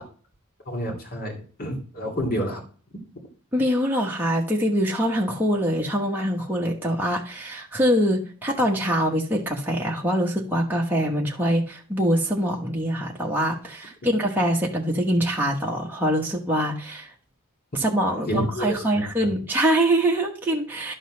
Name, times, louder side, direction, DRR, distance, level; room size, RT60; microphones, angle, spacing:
voice 1, 0.7-2.6 14.0-14.1 18.3-19.3, equal, 45° left, 0 dB, 2.5 m, -29 dB
voice 2, 3.5-17.1 17.7-20.9, equal, 10° right, -2 dB, 1.2 m, -24 dB
11.0 x 3.9 x 6.3 m, 0.40 s
head